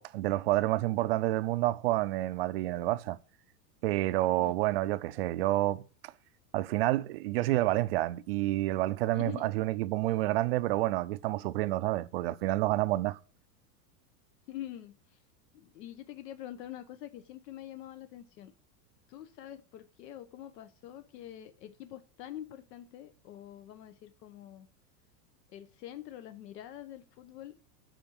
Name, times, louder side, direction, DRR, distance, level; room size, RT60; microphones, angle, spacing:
voice 1, 0.0-3.2 3.8-6.1 6.5-13.2, right 17 dB, 40° right, 0.4 m, -29 dB
voice 2, 9.1-9.5 14.5-15.2 15.5-18.5 19.1-24.7 25.5-27.5, left 12 dB, 80° left, 1.1 m, -45 dB
8.9 x 5.1 x 7.7 m
supercardioid pair, 165°, 48 cm